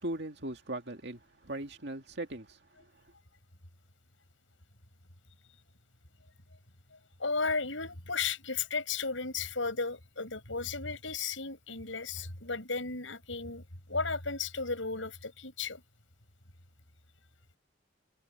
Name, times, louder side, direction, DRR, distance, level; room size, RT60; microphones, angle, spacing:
voice 1, 0.0-2.6, right 1 dB, 60° right, 2.4 m, -39 dB
voice 2, 7.2-15.8, left 4 dB, 90° left, 6.9 m, -34 dB
head